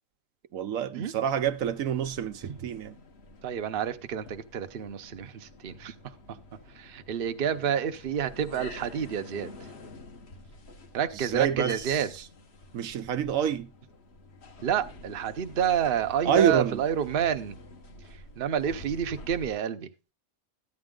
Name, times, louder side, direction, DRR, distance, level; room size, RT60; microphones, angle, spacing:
voice 1, 0.5-3.0 11.1-12.2 12.7-13.7 16.2-16.8, right 8 dB, 75° right, 1.1 m, -27 dB
sound 1, 1.2-19.6, left 2 dB, 50° left, 1.5 m, -48 dB
voice 2, 3.4-5.9 6.8-9.5 10.9-12.1 14.6-17.6 18.4-19.9, right 8 dB, 50° right, 0.9 m, -29 dB
14.0 x 9.7 x 3.8 m
omnidirectional pair, 1.4 m